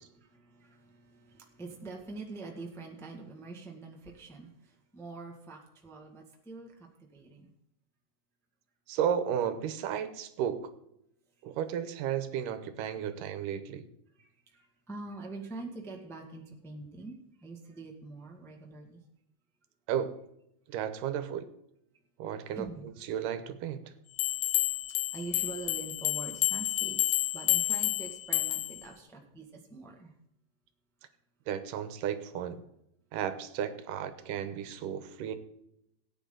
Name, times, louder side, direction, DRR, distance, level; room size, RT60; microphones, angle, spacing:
voice 1, 0.0-6.7 7.0-7.5 14.2-19.0 22.5-22.9 24.7-24.8 25.1-30.1, right 3 dB, ahead, 0 dB, 0.9 m, -45 dB
voice 2, 8.9-10.7 11.4-13.8 19.9-20.2 20.7-21.5 22.2-22.7 23.1-23.9 31.5-32.6 33.1-35.4, right 9 dB, 85° right, 11 dB, 2.5 m, -33 dB
sound 1, 24.2-28.8, left 16 dB, 75° left, 1.8 m, -30 dB
18.0 x 9.0 x 3.9 m, 0.80 s
omnidirectional pair, 3.7 m